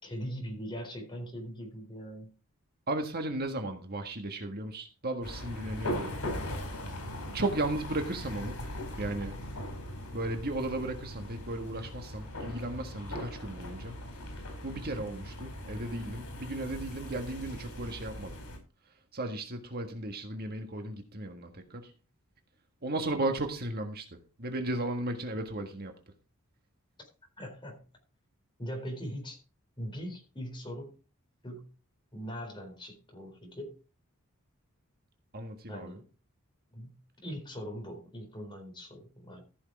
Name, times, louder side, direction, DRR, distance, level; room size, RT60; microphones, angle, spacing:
voice 1, 0.0-2.3 27.0-27.1 27.4-27.8 28.6-29.4 29.8-31.0 31.4-31.7 32.1-33.8 35.7-36.1 36.7-39.4, equal, 20° left, 4.1 m, -41 dB
voice 2, 2.9-6.2 7.3-8.6 9.0-9.4 10.1-14.0 14.6-18.4 19.1-21.9 22.8-24.1 24.4-26.0 35.3-36.0, right 2 dB, 45° right, 1.6 m, -35 dB
sound 1, 5.2-18.6, left 1 dB, 85° left, 5.1 m, -40 dB
14.5 x 6.4 x 4.8 m
head